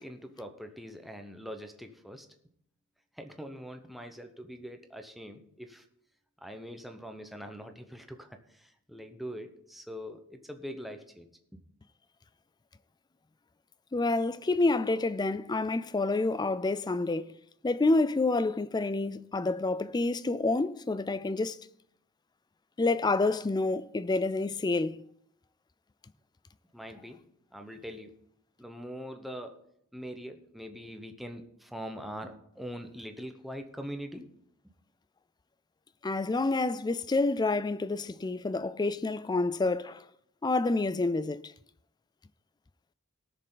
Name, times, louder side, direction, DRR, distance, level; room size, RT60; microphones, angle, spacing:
voice 1, 0.0-2.3 3.2-5.9 6.4-11.6 26.7-27.2 27.5-28.1 28.6-29.6 29.9-34.3, equal, ahead, 0.9 m, -43 dB
voice 2, 13.9-17.3 17.6-21.6 22.8-25.0 36.0-40.0 40.4-41.4, left 3 dB, 20° left, 0.3 m, -28 dB
18.5 x 6.7 x 3.9 m
head